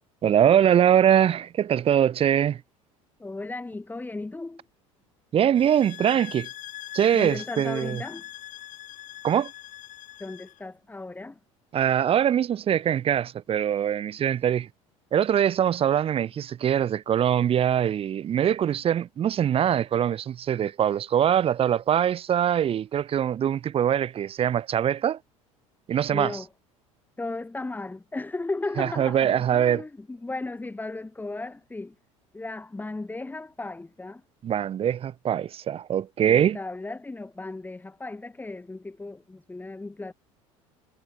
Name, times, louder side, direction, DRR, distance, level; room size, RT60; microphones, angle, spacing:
voice 1, 0.2-2.6 5.3-6.5 6.9-8.0 9.2-9.5 11.7-14.7 15.1-25.2 25.9-26.4 28.8-29.8 34.4-36.6, right 9 dB, 35° right, 0.6 m, -23 dB
voice 2, 3.2-4.6 7.1-8.3 10.2-11.4 26.1-26.5 27.2-31.9 32.3-34.2 36.3-40.1, left 2 dB, 10° left, 0.8 m, -35 dB
sound 1, 5.6-10.6, left 14 dB, 50° left, 0.9 m, -42 dB
hypercardioid pair, 70°, 17 cm